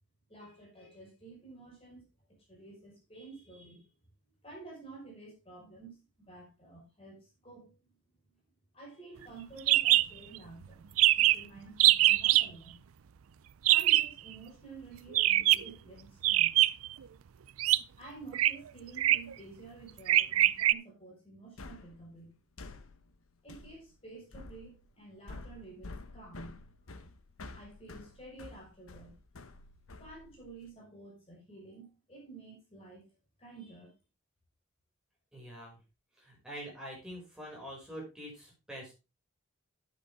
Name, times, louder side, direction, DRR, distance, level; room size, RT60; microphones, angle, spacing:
voice 1, 0.3-3.9 4.4-7.8 8.7-10.9 11.2-12.8 13.7-16.6 18.0-22.3 23.4-26.6 27.5-29.2 30.0-33.1 33.4-33.9, right 3 dB, 25° left, -2 dB, 5.2 m, -51 dB
sound 1, 9.7-10.1 10.3-10.4 10.7-10.8 11.0-11.4 11.8-12.5 13.7-14.1 15.1-15.7 16.2-16.9 17.6-17.8 18.3-18.5 19.0-19.3 20.1-20.7, right 15 dB, 85° right, 0.4 m, -23 dB
sound 2, 21.6-30.7, left 2 dB, 90° left, 1.1 m, -50 dB
voice 2, 35.3-35.8 36.2-38.9, equal, 5° right, -3 dB, 6.0 m, -45 dB
10.5 x 9.1 x 3.6 m, 0.28 s
head